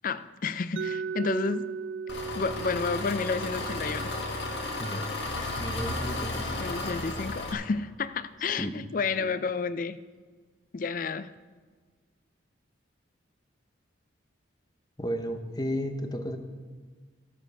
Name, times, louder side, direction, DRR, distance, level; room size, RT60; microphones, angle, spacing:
voice 1, 0.0-1.7 2.3-4.1 6.6-10.0 10.7-11.3, left 4 dB, 45° left, 15 dB, 0.4 m, -31 dB
Mallet percussion, 0.8-6.6, right 5 dB, 65° right, 0.3 m, -39 dB
Engine, 2.1-7.5, left 2 dB, 60° left, 1.5 m, -33 dB
voice 2, 5.6-6.6 8.6-8.8 15.0-16.4, equal, 20° left, 7 dB, 0.8 m, -33 dB
12.5 x 7.0 x 6.7 m, 1.5 s
head